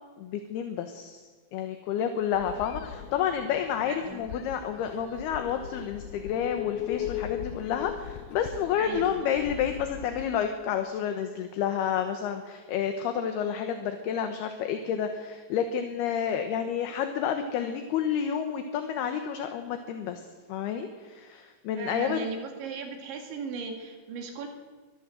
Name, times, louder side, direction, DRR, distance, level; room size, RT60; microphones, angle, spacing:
voice 1, 0.2-1.2 1.5-20.2 20.5-22.2, left 8 dB, 70° left, 6 dB, 2.8 m, -30 dB
sound 1, 2.3-10.3, left 11 dB, 85° left, 2.1 m, -38 dB
voice 2, 21.8-24.5, right 5 dB, 75° right, 4 dB, 4.5 m, -37 dB
24.5 x 14.5 x 7.6 m, 1.4 s
omnidirectional pair, 5.4 m